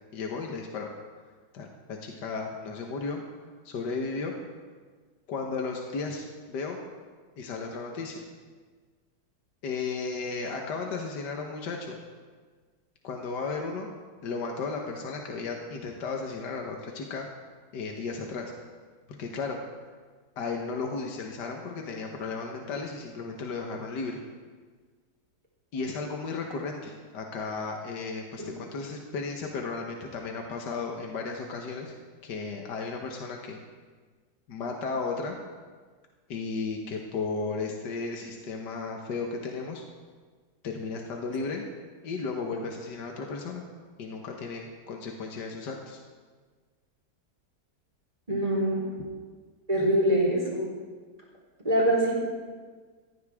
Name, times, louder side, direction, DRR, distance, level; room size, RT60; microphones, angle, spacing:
voice 1, 0.1-0.9 1.5-3.2 3.7-4.3 5.3-6.8 7.4-8.3 9.6-12.0 13.0-13.9 14.2-17.3 17.7-18.5 19.2-19.6 20.4-24.2 25.7-31.9 32.2-33.6 34.5-35.4 36.3-39.8 40.6-41.6 42.0-43.6 44.0-46.0, left 4 dB, 75° left, 1 dB, 1.9 m, -34 dB
voice 2, 48.3-48.9 49.7-50.7 51.6-52.1, right 1 dB, 20° right, -5 dB, 4.3 m, -24 dB
18.5 x 15.0 x 3.6 m, 1.5 s
omnidirectional pair, 1.9 m